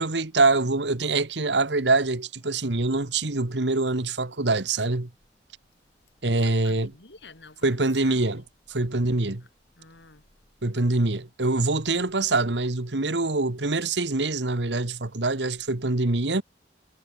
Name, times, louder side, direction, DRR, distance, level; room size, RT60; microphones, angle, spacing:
voice 1, 0.0-5.1 6.2-6.9 7.6-8.4 8.7-9.4 10.6-16.4, right 3 dB, 85° right, 1.6 m, -24 dB
voice 2, 6.4-8.4 9.4-9.5 9.8-10.2, left 3 dB, 80° left, 3.3 m, -49 dB
head